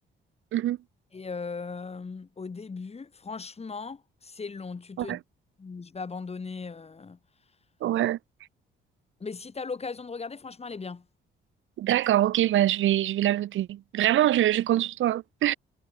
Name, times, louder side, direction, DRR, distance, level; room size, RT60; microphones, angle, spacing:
voice 1, 1.1-5.2 5.6-7.2 9.2-11.0, left 4 dB, 30° left, 5.6 m, -38 dB
voice 2, 7.8-8.2 11.8-15.5, right 13 dB, 80° right, 3.4 m, -24 dB
cardioid pair, 90°, 20 cm